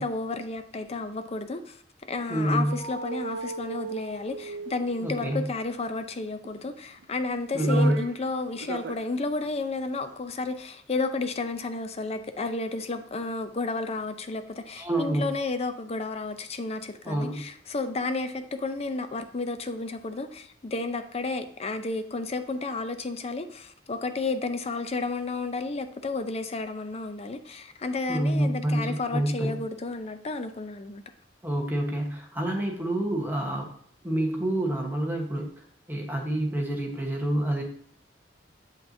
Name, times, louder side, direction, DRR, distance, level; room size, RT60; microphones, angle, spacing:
voice 1, 0.0-1.8 2.1-31.0, left 3 dB, 35° left, 0.5 m, -32 dB
voice 2, 2.3-2.7 5.0-5.5 7.5-8.0 14.8-15.3 17.0-17.4 28.1-29.6 31.4-33.7 34.0-35.6 35.9-37.6, right 1 dB, 10° right, 1.1 m, -27 dB
sound 1, 2.7-5.2 6.4-7.0 7.4-8.2 8.6-9.1 9.4-9.5, right 4 dB, 70° right, 0.4 m, -36 dB
7.3 x 5.5 x 2.7 m
head